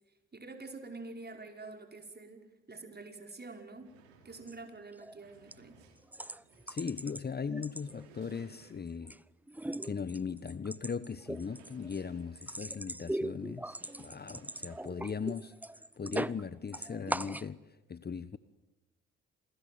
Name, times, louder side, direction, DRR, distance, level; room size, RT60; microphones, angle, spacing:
voice 1, 0.3-3.9 4.2-5.8, right 3 dB, 30° right, 5 dB, 5.1 m, -47 dB
sound 1, 3.0-3.1 3.4-9.1 9.6-9.8 10.2-10.3 11.2-15.0, right 5 dB, 85° right, 3.7 m, -62 dB
sound 2, 4.4-4.5 4.9-5.2 5.5-5.6 6.1-7.2 7.5-8.3 8.7-9.2 9.5-16.4 16.7-17.5, right 1 dB, 5° right, 0.8 m, -40 dB
voice 2, 6.7-9.1 9.8-18.4, left 6 dB, 30° left, 16 dB, 1.0 m, -39 dB
27.5 x 20.0 x 9.3 m, 1.1 s
hypercardioid pair, 45°, 34 cm